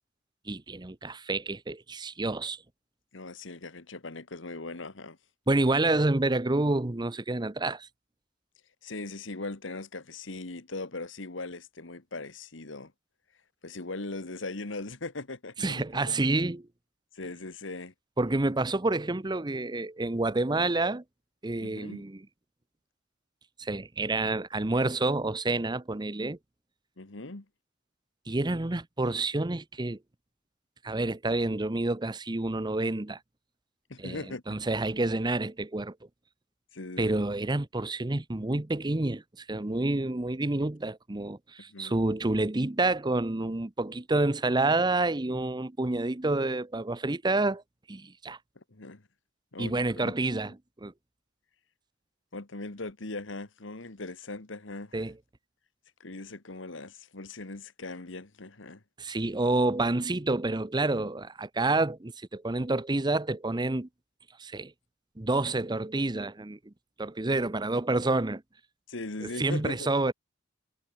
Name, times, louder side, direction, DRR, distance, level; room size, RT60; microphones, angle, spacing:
voice 1, 0.5-2.6 5.5-7.9 15.6-16.7 18.2-21.0 21.4-22.2 23.6-26.4 28.3-30.0 30.8-33.2 34.0-36.0 37.0-47.6 47.9-48.4 49.6-50.5 50.8-50.9 54.9-55.1 59.0-63.9 64.4-64.7 65.2-66.7 67.0-68.4 69.2-70.1, right 2 dB, 20° right, 0.8 m, -28 dB
voice 2, 3.1-5.2 8.8-12.9 13.6-16.0 17.2-17.9 21.6-22.0 27.0-27.5 33.9-34.4 36.7-37.2 41.7-42.0 48.6-49.0 49.5-50.1 52.3-55.0 56.0-58.8 68.9-69.9, left 2 dB, 70° left, 1.7 m, -39 dB
head